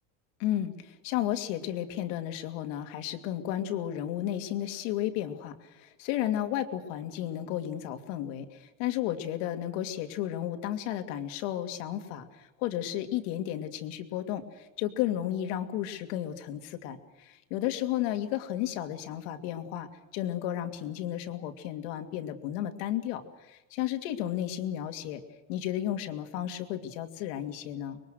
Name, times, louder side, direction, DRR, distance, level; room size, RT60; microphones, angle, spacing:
voice 1, 0.4-25.2 25.5-28.0, left 12 dB, 65° left, 7 dB, 2.7 m, -33 dB
26.0 x 22.5 x 6.4 m, 1.1 s
supercardioid pair, 145°, 40 cm